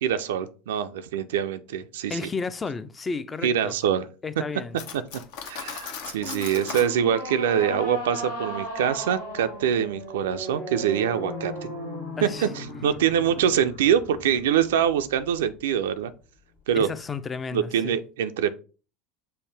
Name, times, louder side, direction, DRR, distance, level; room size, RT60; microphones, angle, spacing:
voice 1, 0.0-2.2 3.4-4.1 5.4-11.7 12.2-16.1 16.7-16.9 17.5-18.5, right 9 dB, 80° right, 0.3 m, -24 dB
voice 2, 2.1-3.7 4.2-4.9 12.2-12.5 16.8-18.0, left 4 dB, 25° left, 0.4 m, -32 dB
Cutlery silverware, 4.7-6.9, left 7 dB, 70° left, 0.6 m, -37 dB
sound 1, 6.2-15.6, equal, 85° left, 1.1 m, -37 dB
5.5 x 2.1 x 3.3 m
hypercardioid pair, 80°, 0 cm